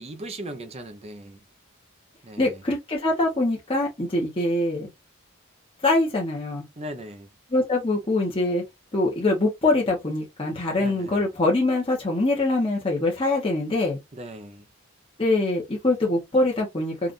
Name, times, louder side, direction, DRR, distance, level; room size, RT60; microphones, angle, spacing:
voice 1, 0.0-1.4 2.2-2.6 6.8-7.3 10.8-11.3 14.1-14.7, right 1 dB, 30° right, 0.6 m, -38 dB
voice 2, 2.4-4.9 5.8-6.7 7.5-8.6 8.9-14.0 15.2-17.1, left 2 dB, 25° left, 0.9 m, -23 dB
3.8 x 2.4 x 2.5 m
head